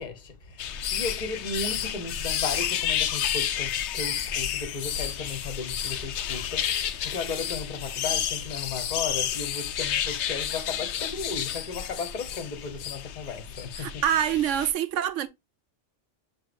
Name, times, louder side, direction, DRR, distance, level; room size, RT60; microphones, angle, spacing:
voice 1, 0.0-14.0, left 4 dB, 40° left, 1.0 m, -35 dB
sound 1, 0.6-14.7, left 9 dB, 70° left, 0.8 m, -30 dB
voice 2, 13.8-15.3, right 10 dB, 80° right, 1.0 m, -25 dB
6.9 x 3.1 x 2.5 m
omnidirectional pair, 1.3 m